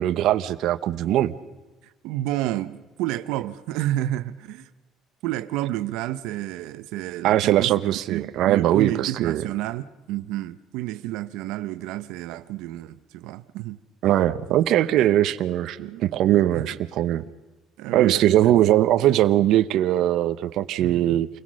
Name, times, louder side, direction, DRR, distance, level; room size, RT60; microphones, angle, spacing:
voice 1, 0.0-1.3 7.2-9.4 14.0-17.2 17.9-21.3, right 13 dB, 60° right, 0.9 m, -21 dB
voice 2, 2.0-4.7 5.2-7.7 8.1-13.8 15.0-15.2 15.8-16.0 16.5-16.6 17.8-18.5 20.8-21.2, right 14 dB, 85° right, 0.9 m, -30 dB
28.0 x 21.0 x 6.4 m
cardioid pair, 165°, 0 cm